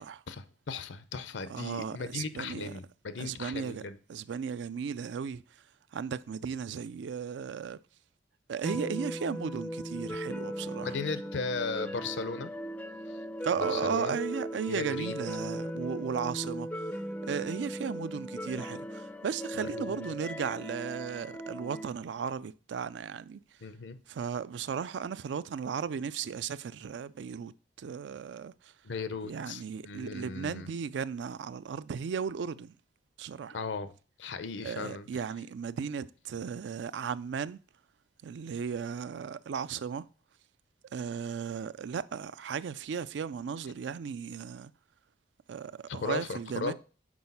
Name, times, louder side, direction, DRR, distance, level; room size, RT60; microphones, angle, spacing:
voice 1, 0.0-4.0 10.8-12.5 13.1-13.2 13.5-14.2 14.7-15.2 19.5-20.2 23.6-24.0 28.8-30.7 33.5-33.9 34.2-35.1 45.9-46.7, left 4 dB, 85° left, 0.6 m, -37 dB
voice 2, 1.5-2.7 3.2-3.8 4.1-5.4 5.9-7.8 8.5-10.9 13.4-16.9 17.2-23.4 24.1-27.5 27.8-28.7 29.2-32.7 33.2-33.6 34.6-37.6 38.2-40.1 40.9-44.7 45.5-46.7, right 6 dB, 80° right, 0.4 m, -35 dB
sound 1, 8.6-21.9, equal, 10° left, 0.3 m, -38 dB
6.1 x 4.7 x 5.4 m
head